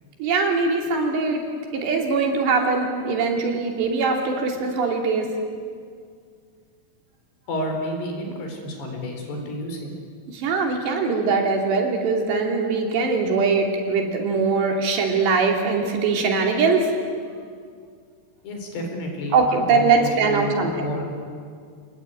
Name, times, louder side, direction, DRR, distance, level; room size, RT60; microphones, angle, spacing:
voice 1, 0.2-1.4 1.7-5.3 10.3-16.9 19.3-20.7, right 4 dB, 85° right, 2 dB, 5.2 m, -21 dB
voice 2, 7.5-9.9 18.4-21.1, left 1 dB, 75° left, 3 dB, 6.3 m, -30 dB
27.0 x 20.5 x 9.2 m, 2.1 s
omnidirectional pair, 4.8 m